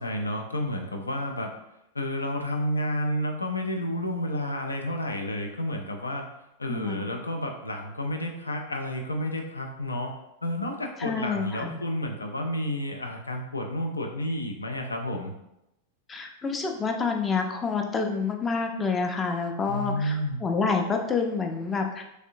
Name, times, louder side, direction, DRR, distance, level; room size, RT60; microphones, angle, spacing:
voice 1, 0.0-1.5 1.9-6.3 6.6-10.2 10.4-15.3 19.7-20.4, left 1 dB, 80° left, 3 dB, 0.5 m, -30 dB
voice 2, 6.7-7.1 11.0-11.8 16.1-22.0, left 4 dB, 20° left, 4 dB, 0.5 m, -28 dB
3.5 x 3.2 x 2.5 m, 0.86 s
figure-of-eight pair, 90°, 0 cm